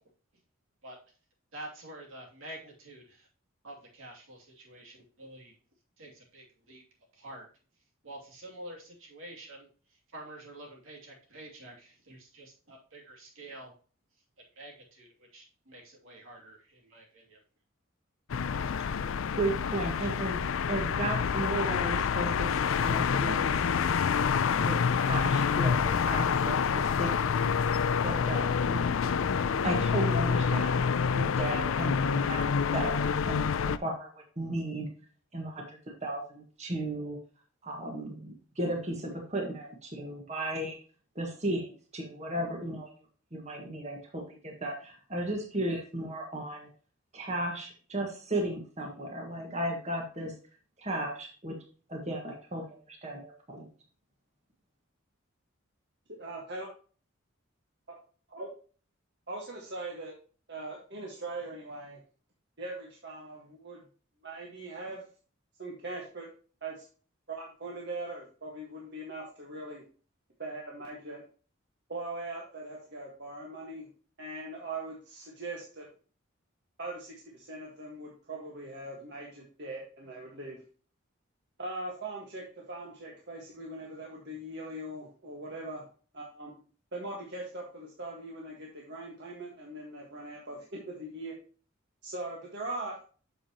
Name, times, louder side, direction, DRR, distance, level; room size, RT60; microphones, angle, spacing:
voice 1, 1.5-3.3 3.6-5.5 6.0-6.8 7.2-7.5 8.0-9.7 10.1-13.7 14.6-17.4, right 1 dB, 80° right, -1 dB, 2.6 m, -48 dB
sound 1, 18.3-33.8, left 6 dB, 75° left, 0.4 m, -27 dB
voice 2, 19.3-20.4 20.7-23.5 24.2-27.5 28.0-29.0 29.6-30.8 31.1-33.0 33.3-33.4 33.6-34.9 35.3-37.2 37.6-40.8 41.1-42.9 43.3-46.7 47.1-50.3 50.8-51.5 51.9-53.7, right 1 dB, 35° right, 1 dB, 1.6 m, -35 dB
voice 3, 56.2-56.7 58.3-58.5 59.3-60.1 60.5-62.0 62.6-63.8 64.2-65.0 65.6-66.3 66.6-66.9 67.3-69.8 70.4-71.2 71.9-73.9 74.2-75.9 76.8-80.6 81.6-85.8 86.1-86.6 86.9-91.4 92.0-93.0, right 2 dB, 55° right, -2 dB, 1.6 m, -41 dB
8.8 x 6.8 x 2.9 m, 0.39 s
head